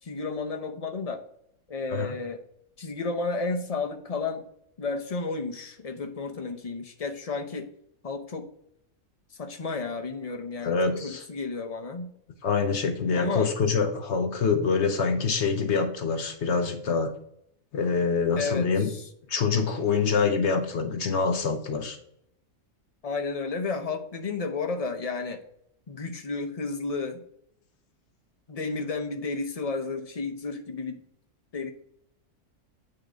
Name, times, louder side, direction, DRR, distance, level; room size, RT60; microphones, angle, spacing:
voice 1, 0.0-1.2 1.7-2.4 2.8-4.4 4.8-7.7 8.0-8.5 9.4-10.8 11.0-12.1 13.1-13.5 18.4-19.1 23.0-25.4 25.9-27.2 28.5-31.0 31.5-31.7, left 4 dB, 35° left, 5 dB, 0.6 m, -32 dB
voice 2, 10.6-11.2 12.4-17.1 17.7-18.9 19.3-22.0, left 5 dB, 60° left, 6 dB, 1.0 m, -25 dB
8.6 x 3.8 x 5.0 m, 0.71 s
omnidirectional pair, 1.4 m